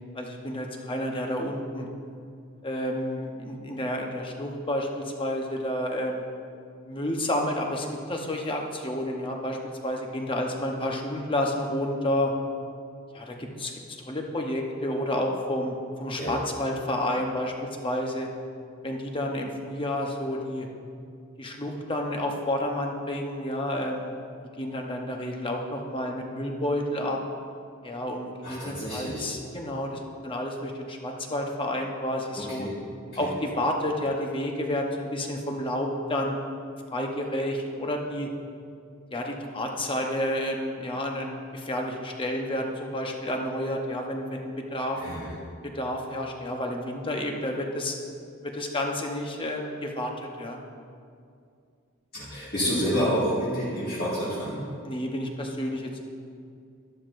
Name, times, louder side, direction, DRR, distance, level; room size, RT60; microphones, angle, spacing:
voice 1, 0.1-1.9 2.6-6.2 6.9-9.6 9.8-12.3 13.1-18.3 18.8-20.7 21.4-24.1 24.6-27.2 27.8-32.7 33.2-36.4 36.9-38.3 39.1-45.0 45.6-47.9 48.4-50.6 54.8-56.0, left 1 dB, 25° left, 1 dB, 0.9 m, -30 dB
voice 2, 28.4-29.3 32.4-32.7 33.1-33.3 45.0-45.3 52.1-54.6, equal, 45° left, -10 dB, 1.9 m, -29 dB
12.0 x 12.0 x 2.6 m, 2.4 s
head